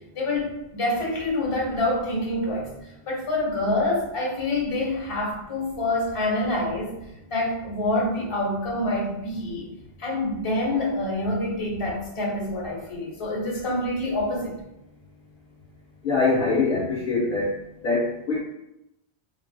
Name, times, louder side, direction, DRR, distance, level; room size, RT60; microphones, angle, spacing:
voice 1, 0.1-6.9 7.3-9.7 10.0-14.5, left 1 dB, 35° left, -4 dB, 0.8 m, -26 dB
voice 2, 16.0-17.5 17.8-18.4, left 3 dB, 60° left, -6 dB, 0.7 m, -23 dB
3.1 x 2.4 x 2.2 m, 0.86 s
omnidirectional pair, 1.1 m